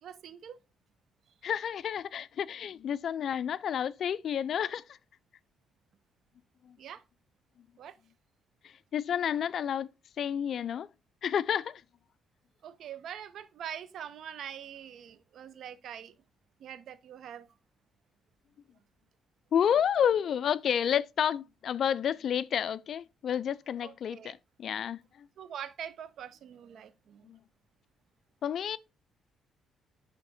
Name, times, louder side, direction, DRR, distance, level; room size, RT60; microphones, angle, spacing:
voice 1, 0.0-0.6 6.8-7.0 7.8-8.0 12.6-16.1 16.6-17.5 23.8-24.3 25.4-27.3, right 9 dB, 70° right, 0.6 m, -44 dB
voice 2, 1.4-5.0 6.6-6.8 8.6-9.9 10.2-10.9 11.2-11.8 19.5-25.3 27.2-27.4 28.4-28.8, left 8 dB, 60° left, 0.3 m, -30 dB
10.5 x 3.5 x 2.6 m
cardioid pair, 90°, 0 cm